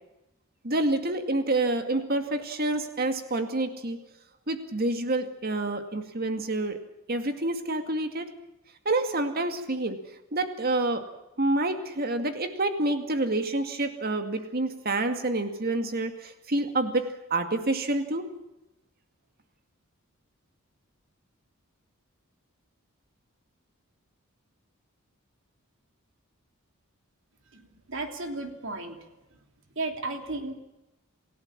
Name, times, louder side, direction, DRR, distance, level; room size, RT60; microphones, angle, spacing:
voice 1, 0.6-4.0 4.5-6.8 7.1-8.3 8.9-10.0 10.3-11.0 11.4-18.3, right 2 dB, 45° right, 7 dB, 2.3 m, -28 dB
voice 2, 27.9-29.0 29.7-30.5, right 2 dB, 60° right, 5 dB, 3.1 m, -33 dB
28.5 x 17.0 x 7.5 m, 0.97 s
head